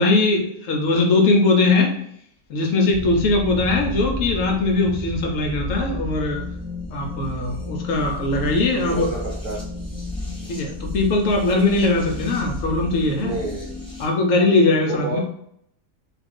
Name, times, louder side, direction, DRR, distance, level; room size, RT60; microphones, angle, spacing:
voice 1, 0.0-1.9 2.5-6.4 6.9-9.1 10.5-13.4 14.0-15.2, left 2 dB, 70° left, 1 dB, 0.8 m, -20 dB
sound 1, 2.9-14.1, left 2 dB, 5° left, 0.7 m, -32 dB
voice 2, 8.7-9.6 13.2-13.8 14.9-15.2, right 3 dB, 70° right, -3 dB, 1.1 m, -29 dB
2.4 x 2.4 x 3.5 m, 0.71 s
omnidirectional pair, 1.7 m